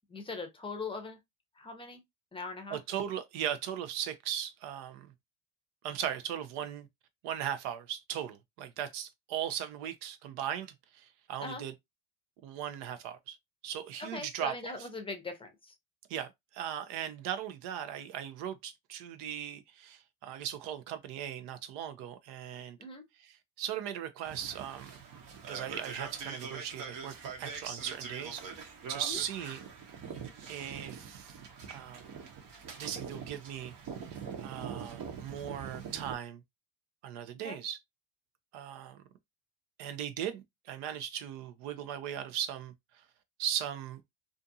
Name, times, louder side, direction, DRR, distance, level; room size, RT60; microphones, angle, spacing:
voice 1, 0.1-1.2 1.6-2.0 2.3-2.8 11.4-11.6 14.0-15.7 22.8-23.1 29.0-29.2 37.4-37.6, left 3 dB, 15° left, 0.6 m, -40 dB
voice 2, 2.7-5.1 5.8-6.9 7.2-11.7 12.4-13.4 13.6-14.5 16.1-22.8 23.2-25.0 25.5-28.4 28.9-29.6 30.5-31.4 31.7-32.1 32.8-33.7 34.0-36.4 37.0-37.8 38.5-39.0 39.8-42.7 43.4-44.0, right 10 dB, 70° right, 0.7 m, -38 dB
sound 1, 24.2-36.1, right 6 dB, 55° right, 0.9 m, -43 dB
2.5 x 2.5 x 2.6 m
cardioid pair, 125°, 41 cm